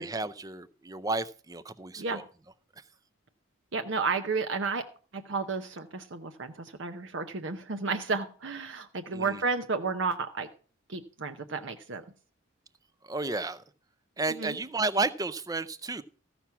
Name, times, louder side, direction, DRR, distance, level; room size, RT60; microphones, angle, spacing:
voice 1, 0.0-2.3 2.8-2.9 9.1-9.4 13.0-13.6 14.2-16.0, right 3 dB, 15° right, 14 dB, 0.5 m, -32 dB
voice 2, 3.7-4.8 5.1-10.5 10.9-12.0 14.4-14.5, right 4 dB, 60° right, 7 dB, 0.7 m, -32 dB
14.5 x 6.0 x 5.7 m, 0.40 s
head